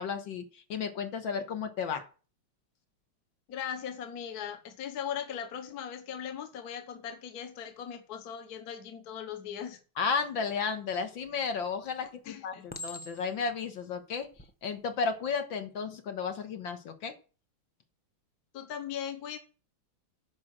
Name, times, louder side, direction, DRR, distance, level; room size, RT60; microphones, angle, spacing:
voice 1, 0.0-2.0 10.0-14.3 14.6-17.1, left 5 dB, 70° left, 2.1 m, -33 dB
voice 2, 3.5-9.8 12.2-12.7 18.5-19.4, left 8 dB, 55° left, 1.6 m, -39 dB
Chink clink, 11.2-11.7 12.7-13.5 14.2-14.5, left 2 dB, 15° left, 0.3 m, -43 dB
10.5 x 5.0 x 7.5 m
omnidirectional pair, 2.2 m